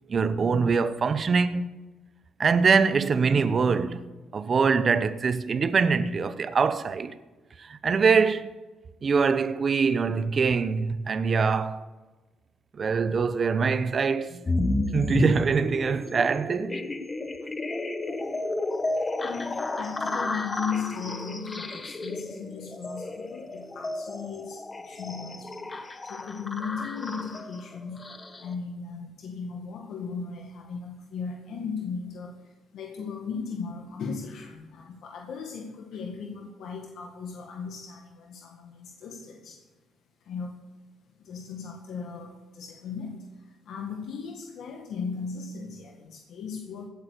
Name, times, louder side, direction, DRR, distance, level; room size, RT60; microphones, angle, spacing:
voice 1, 0.1-1.8 2.4-4.0 4.3-7.1 7.7-8.5 9.0-11.8 12.8-14.4 14.9-16.8, right 5 dB, 45° right, 0.8 m, -23 dB
sound 1, 14.4-28.5, left 2 dB, 25° left, 1.4 m, -32 dB
voice 2, 18.9-39.7 40.3-40.6 41.2-46.9, left 5 dB, 75° left, 1.8 m, -37 dB
16.5 x 8.4 x 6.7 m
cardioid pair, 90°, 0 cm